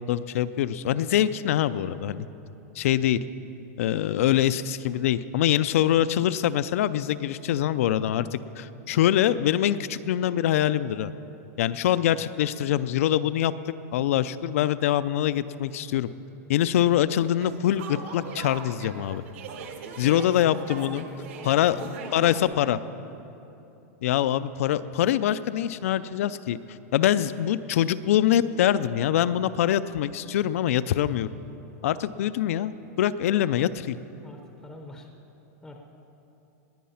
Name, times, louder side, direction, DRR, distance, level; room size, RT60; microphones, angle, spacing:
voice 1, 0.1-2.3 2.8-3.2 3.8-11.1 11.6-13.5 13.9-16.1 16.5-19.2 20.0-21.1 21.4-22.8 24.0-26.6 26.9-31.3 31.8-32.7 33.0-33.9, left 11 dB, 60° left, 15 dB, 0.5 m, -24 dB
sound 1, 17.4-22.4, right 6 dB, 50° right, 1.3 m, -41 dB
voice 2, 21.3-22.9 33.3-33.6 34.2-35.1 35.6-35.8, left 1 dB, 5° left, 2 dB, 0.7 m, -44 dB
19.5 x 9.5 x 5.7 m, 2.9 s
supercardioid pair, 170°, 9 cm